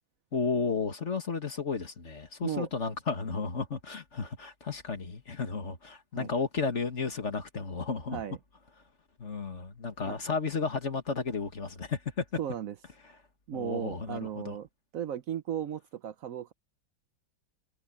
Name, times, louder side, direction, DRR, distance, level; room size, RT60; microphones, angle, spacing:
voice 1, 0.3-8.2 9.2-12.2 13.5-14.6, left 4 dB, 40° left, 1.9 m, -33 dB
voice 2, 12.4-12.7 13.5-14.7 14.9-16.5, right 10 dB, 70° right, 0.8 m, -35 dB
omnidirectional pair, 2.1 m